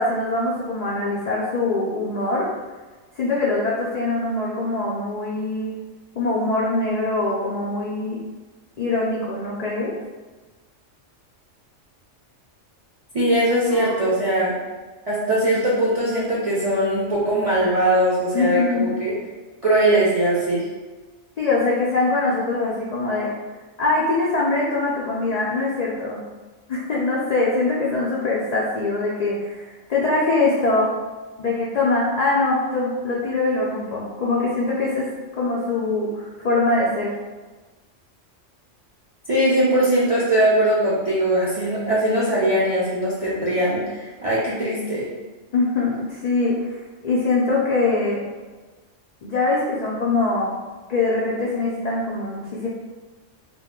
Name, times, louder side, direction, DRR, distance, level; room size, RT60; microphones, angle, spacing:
voice 1, 0.0-2.5 3.2-5.7 6.1-8.2 8.8-9.9 13.7-13.9 18.3-18.9 21.4-23.3 23.8-26.2 26.7-30.9 31.4-35.1 35.4-37.1 45.5-48.2 49.2-50.5 50.9-52.7, left 3 dB, 75° left, -5 dB, 0.3 m, -23 dB
voice 2, 13.1-14.6 15.1-19.2 19.6-20.7 39.3-45.1, right 1 dB, 55° right, -8 dB, 0.4 m, -20 dB
2.3 x 2.1 x 3.5 m, 1.3 s
omnidirectional pair, 1.2 m